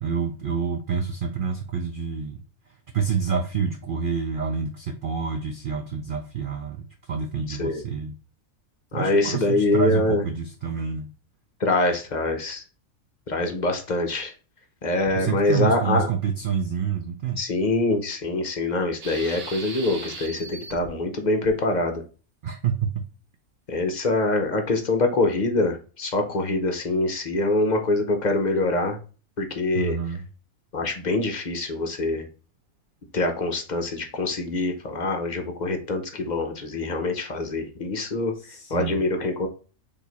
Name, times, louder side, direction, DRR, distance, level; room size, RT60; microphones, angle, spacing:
voice 1, 0.0-2.4 2.9-8.2 8.9-11.1 15.2-17.4 22.4-23.0 29.7-30.3 38.4-39.0, right 6 dB, 80° right, 5 dB, 0.4 m, -28 dB
voice 2, 7.5-7.8 8.9-10.2 11.6-12.6 13.3-14.3 14.8-16.1 17.4-22.0 23.7-29.0 29.4-30.0 30.7-32.3 33.1-38.3 38.7-39.5, left 2 dB, 45° left, 5 dB, 0.6 m, -24 dB
sound 1, 19.0-20.9 21.4-21.5, right 4 dB, 55° right, 1.2 m, -38 dB
4.6 x 2.8 x 4.0 m, 0.36 s
omnidirectional pair, 1.5 m